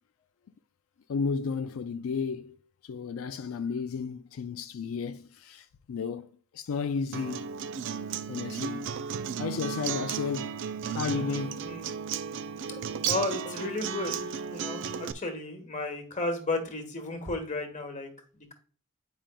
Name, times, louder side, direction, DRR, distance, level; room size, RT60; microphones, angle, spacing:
voice 1, 1.1-2.6 2.8-6.3 6.5-7.6 8.3-8.9 9.4-10.6 10.9-11.7, left 5 dB, 80° left, 0.4 m, -33 dB
Acoustic guitar, 7.1-15.1, right 7 dB, 60° right, 0.4 m, -34 dB
voice 2, 13.1-18.5, left 2 dB, 35° left, 1.2 m, -34 dB
8.9 x 5.0 x 2.2 m
head